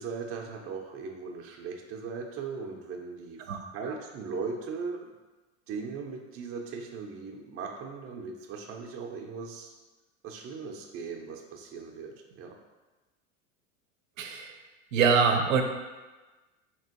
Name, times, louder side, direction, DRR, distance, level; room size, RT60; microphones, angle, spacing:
voice 1, 0.0-3.4 3.7-5.1 5.7-9.7 10.2-12.6, right 5 dB, 35° right, 1 dB, 0.6 m, -38 dB
voice 2, 14.2-14.5 14.9-15.6, right 5 dB, 85° right, 4 dB, 0.6 m, -24 dB
4.2 x 2.9 x 2.8 m, 1.2 s
hypercardioid pair, 95°, 39 cm